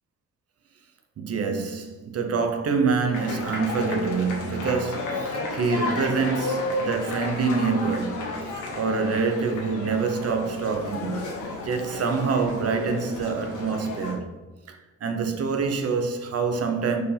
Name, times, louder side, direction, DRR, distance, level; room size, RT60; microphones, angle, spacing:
voice 1, 1.2-11.2 11.6-14.3 14.7-17.0, right 4 dB, 55° right, 1.0 m, -26 dB
sound 1, 3.1-14.1, left 2 dB, 75° left, 1.7 m, -32 dB
6.4 x 4.6 x 3.5 m
cardioid pair, 90°, 30 cm